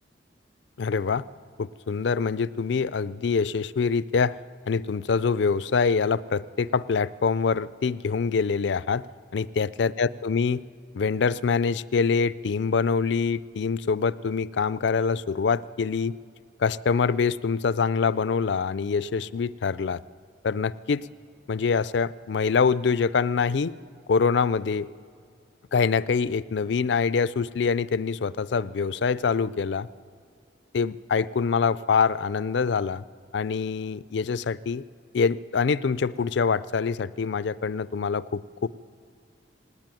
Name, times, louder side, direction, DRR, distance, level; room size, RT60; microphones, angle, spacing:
voice 1, 0.8-1.2 1.6-4.4 4.7-9.1 9.3-10.6 10.9-16.1 16.6-20.0 20.4-21.0 21.5-23.7 24.1-24.9 25.7-29.9 30.7-33.0 33.3-34.8 35.1-38.7, left 5 dB, 70° left, 18 dB, 0.4 m, -25 dB
18.5 x 18.5 x 9.1 m, 2.3 s
head